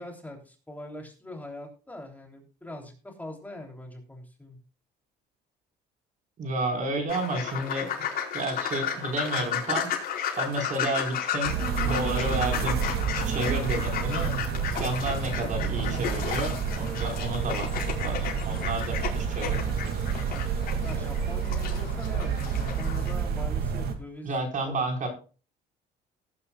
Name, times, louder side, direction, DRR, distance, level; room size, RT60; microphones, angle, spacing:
voice 1, 0.0-4.6 20.3-20.4 20.8-24.3 24.6-24.7, left 1 dB, 10° left, 2 dB, 3.3 m, -42 dB
voice 2, 6.4-7.9 8.3-9.9 10.4-11.6 11.8-12.8 13.2-17.7 18.0-20.2 24.2-25.1, right 2 dB, 50° right, 3 dB, 4.9 m, -31 dB
sound 1, 7.1-23.1, left 8 dB, 60° left, 4.9 m, -34 dB
sound 2, 11.4-23.9, right 7 dB, 70° right, 2.5 m, -29 dB
18.5 x 9.7 x 2.4 m, 0.36 s
cardioid pair, 110°, 17 cm